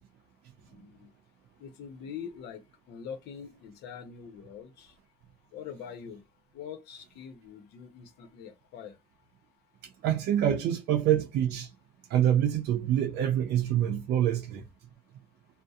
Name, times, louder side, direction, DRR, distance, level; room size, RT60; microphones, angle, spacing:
voice 1, 0.7-1.1 1.6-2.6 2.9-4.9 5.5-6.2 6.5-9.0, left 7 dB, 80° left, 0.7 m, -43 dB
voice 2, 10.0-11.7 12.1-14.6, right 10 dB, 75° right, 0.5 m, -26 dB
2.6 x 2.0 x 2.3 m
cardioid pair, 110°, 17 cm